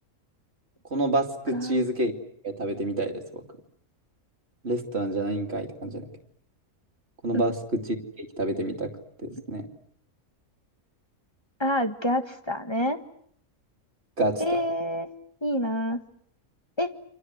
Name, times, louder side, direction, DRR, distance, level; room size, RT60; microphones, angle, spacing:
voice 1, 0.9-2.1 2.4-3.4 4.6-6.0 7.2-7.5 8.2-8.9 9.2-9.7 14.2-14.4, right 1 dB, 45° right, 4 dB, 2.9 m, -28 dB
voice 2, 1.5-1.8 7.3-7.4 11.6-13.0 14.4-15.1 15.4-16.0 16.8-16.9, equal, 20° left, 8 dB, 1.6 m, -27 dB
29.0 x 25.5 x 8.0 m, 0.65 s
omnidirectional pair, 1.5 m